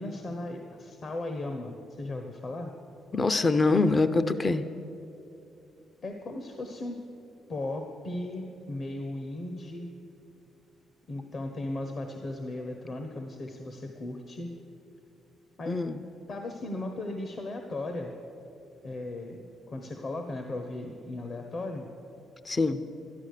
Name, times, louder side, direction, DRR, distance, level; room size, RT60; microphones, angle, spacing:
voice 1, 0.0-2.7 6.0-7.0 7.5-9.9 11.1-14.5 15.6-15.8 16.3-18.1 18.8-21.9, left 2 dB, 50° left, 4 dB, 1.0 m, -36 dB
voice 2, 3.1-4.6 15.7-16.0 22.4-22.8, left 3 dB, 30° left, 11 dB, 0.5 m, -24 dB
12.5 x 11.0 x 6.7 m, 2.8 s
cardioid pair, 90°, 0 cm